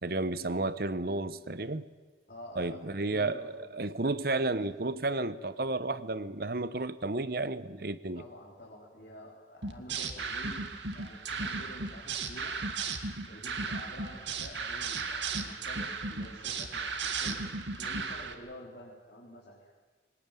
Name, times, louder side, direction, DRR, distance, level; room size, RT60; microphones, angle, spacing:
voice 1, 0.0-1.9 2.6-8.2, right 2 dB, 55° right, 1.0 m, -32 dB
voice 2, 2.3-3.8 8.1-10.6 10.9-12.6 13.3-16.9 17.2-17.4 17.8-19.6, left 1 dB, 55° left, 4.1 m, -49 dB
sound 1, 9.6-18.3, right 4 dB, 85° right, 2.2 m, -35 dB
23.0 x 19.0 x 9.2 m
head